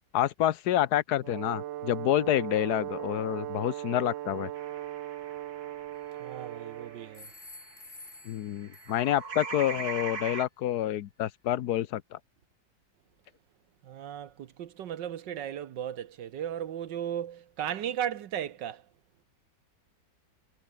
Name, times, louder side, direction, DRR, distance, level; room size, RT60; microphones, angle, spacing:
voice 1, 0.1-4.5 8.3-12.2, left 12 dB, 65° left, 1.2 m, -28 dB
Brass instrument, 1.2-7.2, right 13 dB, 90° right, 1.6 m, -38 dB
sound 1, 4.6-8.3 8.6-10.5, right 4 dB, 55° right, 3.3 m, -41 dB
sound 2, 5.9-6.6 7.1-9.3, left 2 dB, 25° left, 3.4 m, -51 dB
voice 2, 6.2-7.3 13.8-18.8, right 10 dB, 75° right, 1.6 m, -36 dB
omnidirectional pair, 2.0 m